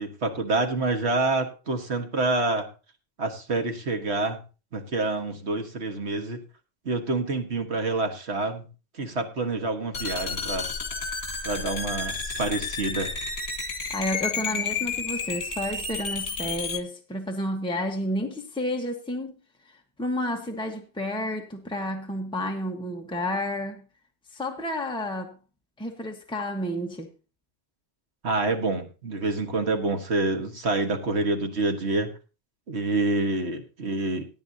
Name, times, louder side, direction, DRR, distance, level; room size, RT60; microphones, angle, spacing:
voice 1, 0.0-2.7 3.2-4.4 4.7-6.4 6.9-8.7 9.0-10.7 11.4-13.1 28.2-32.1 32.7-34.3, right 2 dB, 80° right, 1.8 m, -27 dB
sound 1, 9.9-16.8, left 4 dB, 75° left, 1.7 m, -31 dB
voice 2, 13.9-19.4 20.0-23.8 24.3-25.3 25.8-27.1, left 1 dB, 5° left, 1.3 m, -31 dB
17.5 x 9.1 x 2.8 m
omnidirectional pair, 1.1 m